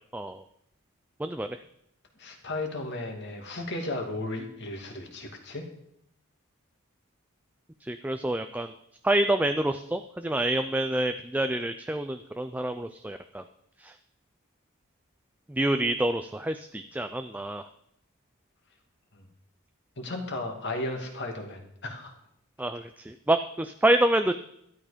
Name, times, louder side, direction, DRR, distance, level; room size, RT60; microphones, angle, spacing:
voice 1, 0.1-0.4 1.2-1.6 7.8-8.7 9.0-13.4 13.8-13.9 15.5-17.6 22.6-24.3, right 1 dB, 5° right, 8 dB, 0.4 m, -27 dB
voice 2, 2.2-5.7 19.2-19.3 20.0-22.1, left 2 dB, 50° left, 2 dB, 2.5 m, -35 dB
12.5 x 12.5 x 5.1 m, 0.76 s
head